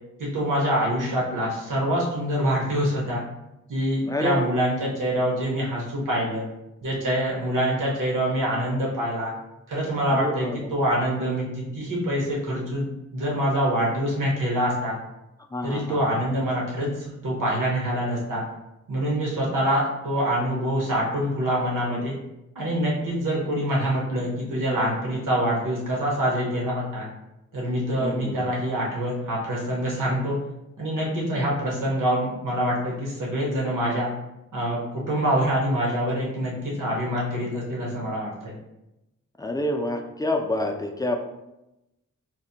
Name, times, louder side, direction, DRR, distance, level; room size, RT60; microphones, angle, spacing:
voice 1, 0.2-3.2 3.7-6.5 6.8-9.3 9.7-14.9 15.6-18.4 18.9-22.2 22.5-27.1 27.5-30.4 30.8-34.1 34.5-38.6, equal, 75° right, -4 dB, 1.0 m, -25 dB
voice 2, 4.1-4.6 10.1-10.7 15.5-16.2 28.0-28.5 39.4-41.2, left 1 dB, 10° left, 3 dB, 0.4 m, -28 dB
5.8 x 2.1 x 2.7 m, 0.92 s
wide cardioid pair, 120°, 32 cm